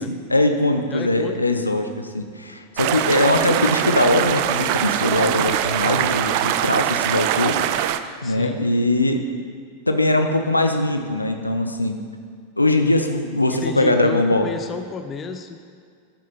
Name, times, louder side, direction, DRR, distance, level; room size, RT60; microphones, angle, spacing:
voice 1, 0.3-7.6 8.2-9.2 9.9-12.0 12.6-14.5, left 1 dB, 85° left, 6 dB, 0.7 m, -21 dB
voice 2, 0.9-1.7 8.2-8.7 13.5-15.6, left 5 dB, 25° left, 7 dB, 0.6 m, -32 dB
sound 1, 2.8-8.0, right 12 dB, 45° right, 0.4 m, -22 dB
13.0 x 6.1 x 4.3 m, 2.2 s
figure-of-eight pair, 90°, 0 cm